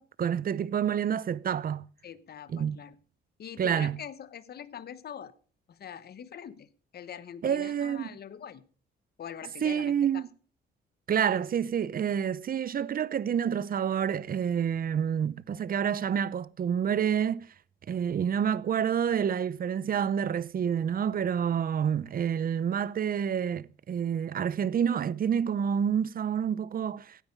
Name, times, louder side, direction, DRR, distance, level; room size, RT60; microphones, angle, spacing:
voice 1, 0.0-1.8 2.5-2.8 3.6-4.0 7.4-8.1 9.6-10.3 11.1-17.5 17.9-27.2, right 8 dB, 45° right, 0.7 m, -28 dB
voice 2, 2.0-2.9 3.4-5.3 5.7-8.6 9.2-10.2, left 8 dB, 55° left, 1.1 m, -43 dB
16.5 x 9.7 x 5.3 m
cardioid pair, 90°, 20 cm